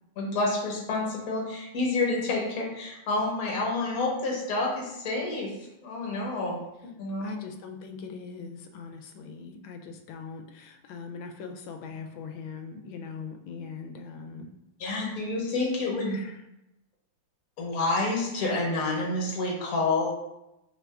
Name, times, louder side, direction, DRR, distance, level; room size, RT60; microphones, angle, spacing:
voice 1, 0.2-5.5 5.8-6.6 7.0-7.3 14.8-16.2 17.6-20.1, left 2 dB, 50° left, -2 dB, 1.3 m, -28 dB
voice 2, 7.2-14.5 16.1-16.4, left 5 dB, 75° left, 5 dB, 1.3 m, -41 dB
4.7 x 2.5 x 3.3 m, 0.88 s
omnidirectional pair, 2.3 m